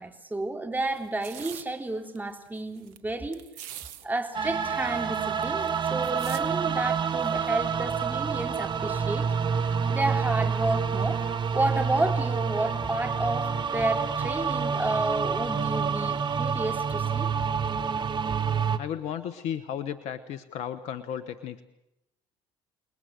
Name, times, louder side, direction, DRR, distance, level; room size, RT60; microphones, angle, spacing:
voice 1, 0.0-3.4 4.0-9.3 9.6-11.2 11.5-17.3, right 2 dB, 15° right, 4 dB, 3.6 m, -31 dB
sound 1, 0.9-1.7 2.2-2.3 2.5-3.0 3.3-4.1 4.3-4.4 4.6-6.4 7.2-7.5, right 12 dB, 75° right, 1.5 m, -43 dB
sound 2, 4.3-18.8, right 6 dB, 40° right, 1.7 m, -28 dB
voice 2, 18.8-21.6, left 9 dB, 65° left, 12 dB, 1.2 m, -34 dB
29.5 x 20.0 x 6.6 m, 0.85 s
hypercardioid pair, 65°, 13 cm